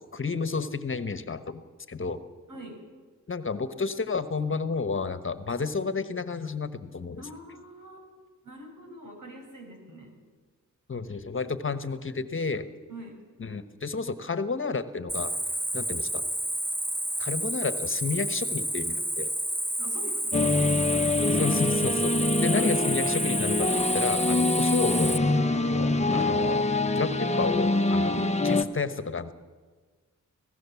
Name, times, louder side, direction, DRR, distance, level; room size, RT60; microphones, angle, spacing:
voice 1, 0.0-1.6 1.9-2.2 3.3-7.2 10.9-12.6 13.4-15.3 15.7-16.2 17.2-19.3 21.4-25.2 25.7-26.7 26.9-28.2 28.4-29.3, left 4 dB, 40° left, 11 dB, 1.3 m, -31 dB
voice 2, 2.5-2.8 7.2-8.1 8.4-10.1 12.9-13.2 19.8-20.9 24.5-24.8 28.1-28.4, right 1 dB, 75° right, 3 dB, 6.0 m, -44 dB
Cricket, 15.1-25.2, right 1 dB, 5° right, 0.9 m, -30 dB
sound 1, 20.3-28.6, left 2 dB, 20° left, 1.1 m, -25 dB
25.5 x 16.5 x 7.2 m, 1.4 s
cardioid pair, 80°, 32 cm